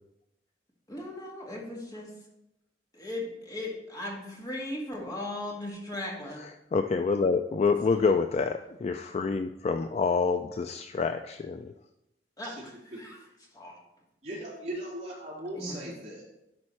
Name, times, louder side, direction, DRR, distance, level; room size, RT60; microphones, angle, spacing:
voice 1, 0.9-2.1 2.9-6.4 8.0-8.1 12.4-13.2 13.5-13.8 15.5-15.9, left 1 dB, 20° left, -2 dB, 1.8 m, -38 dB
voice 2, 6.4-11.7, left 4 dB, 35° left, 8 dB, 0.3 m, -27 dB
voice 3, 14.2-16.2, right 1 dB, 40° right, -5 dB, 3.0 m, -38 dB
11.0 x 4.3 x 4.3 m, 0.87 s
head